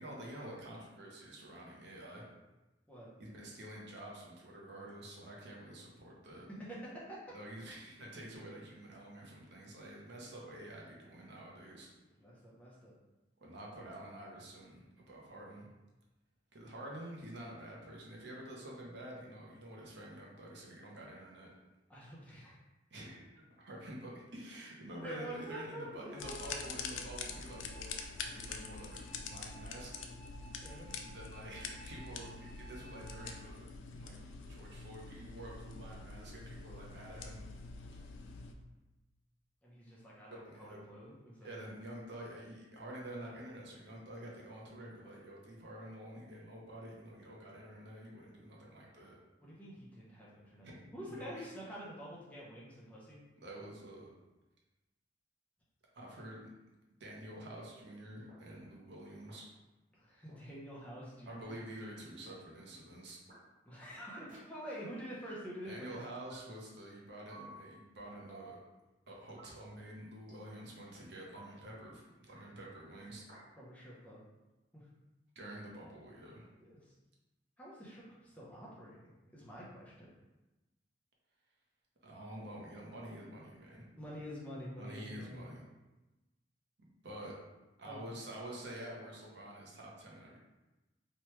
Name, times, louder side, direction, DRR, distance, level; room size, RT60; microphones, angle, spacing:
voice 1, 0.0-2.2 3.2-6.5 7.3-11.9 13.4-15.7 16.5-21.5 22.9-29.9 31.1-34.2 34.5-37.4 40.4-40.8 41.4-49.2 50.6-50.9 51.2-51.5 53.4-54.1 55.9-56.5 57.0-59.5 61.3-63.2 65.6-68.6 69.1-73.2 75.4-76.5 82.0-83.8 84.8-85.6 87.0-87.3 87.8-90.4, right 1 dB, 60° right, -3 dB, 0.7 m, -48 dB
voice 2, 6.5-7.3 12.2-13.0 21.9-22.6 25.0-26.6 30.6-30.9 39.6-41.5 49.4-53.2 59.9-61.6 63.7-66.0 73.6-74.3 74.7-74.9 76.6-76.9 77.6-80.1 83.9-85.5 87.9-88.1, equal, 10° left, -7 dB, 0.6 m, -47 dB
sound 1, 26.1-33.3, right 2 dB, 55° left, 0.9 m, -57 dB
sound 2, 26.2-38.5, left 4 dB, 80° left, 0.3 m, -45 dB
sound 3, 56.3-56.4 57.3-57.4 58.3-58.4 59.3-59.4 60.3-60.4 61.3-61.4 62.3-62.4 63.3-63.4 64.3-64.4 65.3-65.4 66.3-66.4 67.3-67.5 68.3-68.5 69.3-69.5 70.3-70.5 71.3-71.5 72.3-72.4 73.3-73.4, right 3 dB, 45° right, 1.1 m, -54 dB
3.0 x 2.2 x 3.0 m, 1.1 s
head